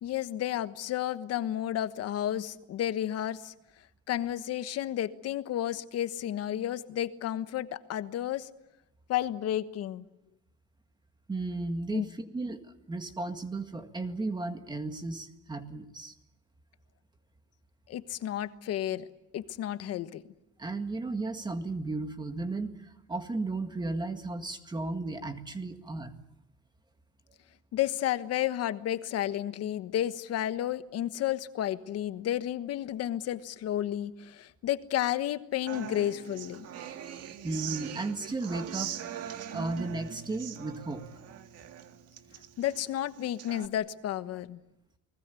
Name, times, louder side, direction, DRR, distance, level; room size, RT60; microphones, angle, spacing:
voice 1, 0.0-3.5 4.1-8.5 9.1-10.0 11.9-12.1 17.9-19.0 19.3-20.2 27.7-36.6 42.6-44.6, left 12 dB, 50° left, 12 dB, 1.3 m, -32 dB
voice 2, 11.3-12.6 12.9-16.1 20.6-26.1 37.4-38.9 39.5-41.0, right 3 dB, 15° right, 7 dB, 1.9 m, -34 dB
Human voice / Acoustic guitar, 35.7-43.7, right 9 dB, 50° right, 1.9 m, -41 dB
30.0 x 20.5 x 8.4 m, 0.86 s
cardioid pair, 155°, 31 cm